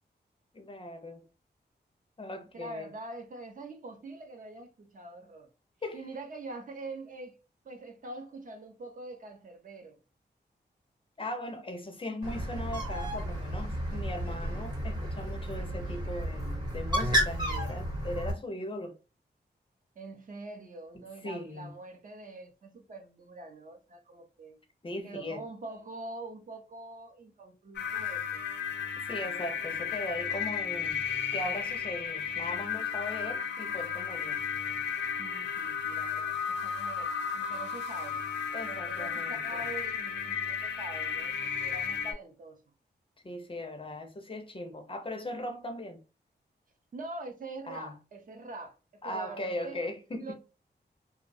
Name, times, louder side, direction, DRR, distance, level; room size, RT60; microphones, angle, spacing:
voice 1, 0.5-1.2 2.2-2.9 5.8-6.0 11.2-19.0 20.9-21.8 24.8-25.4 29.0-31.1 31.3-34.4 38.5-39.7 43.2-46.0 47.7-47.9 49.0-50.3, left 1 dB, 30° left, 0.4 m, -39 dB
voice 2, 2.5-5.5 5.9-10.0 20.0-24.6 25.0-28.5 35.2-38.2 38.7-41.3 41.6-42.6 46.9-49.8 50.2-50.3, right 2 dB, 50° right, 0.5 m, -44 dB
Bird, 12.2-18.3, equal, 25° right, 0.8 m, -32 dB
sound 1, 27.7-42.1, left 7 dB, 80° left, 0.5 m, -34 dB
2.6 x 2.0 x 2.5 m
wide cardioid pair, 160°, 18 cm